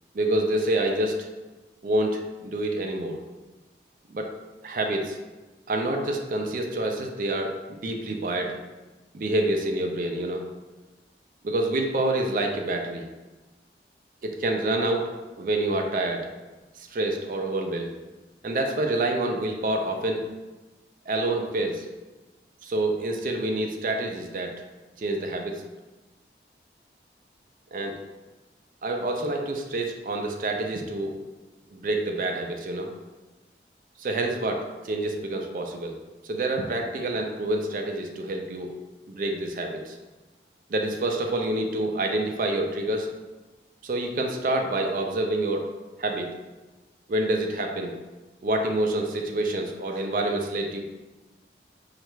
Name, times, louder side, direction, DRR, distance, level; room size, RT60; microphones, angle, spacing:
voice 1, 0.1-1.2 1.8-3.2 4.1-4.3 4.6-5.2 5.7-8.6 9.1-10.4 11.4-13.1 14.2-15.1 15.4-16.3 16.9-17.9 18.4-20.2 21.1-21.9 22.6-24.5 25.0-25.6 27.7-28.0 28.8-31.1 31.7-32.9 34.0-35.9 36.2-38.7 39.1-40.0 40.7-43.1 43.8-45.7 46.0-46.3 47.1-48.0 48.4-50.8, right 1 dB, 50° right, 2 dB, 0.4 m, -27 dB
4.3 x 2.4 x 3.1 m, 1.2 s
head